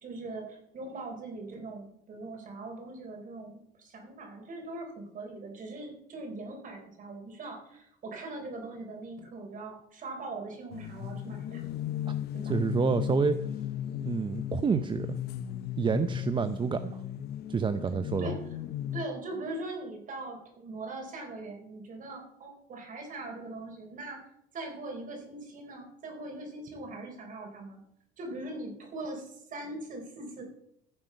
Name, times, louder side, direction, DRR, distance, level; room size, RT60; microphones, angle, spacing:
voice 1, 0.0-11.6 12.3-12.5 18.2-18.4 18.9-24.2 24.5-27.8 28.2-30.4, right 2 dB, 50° right, 2 dB, 4.2 m, -41 dB
sound 1, 10.7-19.1, left 11 dB, 70° left, 0.8 m, -36 dB
voice 2, 12.4-13.4 14.0-15.2 15.8-17.0 17.5-18.3, right 6 dB, 30° right, 10 dB, 0.6 m, -28 dB
14.5 x 7.4 x 5.3 m, 0.74 s
cardioid pair, 110°, 17 cm